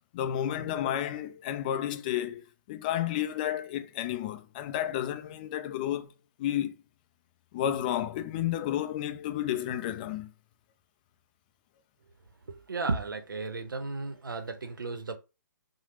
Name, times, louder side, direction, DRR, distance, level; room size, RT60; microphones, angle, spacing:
voice 1, 0.1-6.1 6.4-6.8 7.5-10.3, left 11 dB, 25° left, 0.3 m, -31 dB
voice 2, 12.5-15.2, right 3 dB, 90° right, 0.6 m, -34 dB
3.1 x 2.0 x 3.0 m
hypercardioid pair, 145°, 11 cm